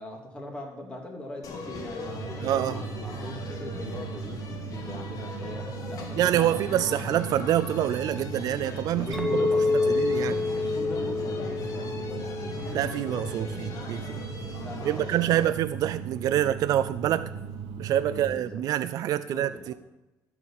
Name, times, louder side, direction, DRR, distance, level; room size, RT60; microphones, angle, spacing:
voice 1, 0.0-7.1 8.9-12.6 13.4-13.6 14.6-15.4 18.0-18.6 19.2-19.7, left 1 dB, 15° left, 2.5 m, -41 dB
sound 1, 1.4-15.5, left 3 dB, 55° left, 1.9 m, -40 dB
sound 2, 2.0-18.3, right 6 dB, 80° right, 1.1 m, -38 dB
voice 2, 2.4-2.8 6.2-9.3 10.0-10.4 12.7-14.2 14.9-17.3 17.8-19.7, right 11 dB, 60° right, 0.4 m, -26 dB
Chink clink, 9.1-13.6, left 3 dB, 5° right, 1.6 m, -28 dB
13.0 x 4.8 x 7.2 m
cardioid pair, 105°, 7 cm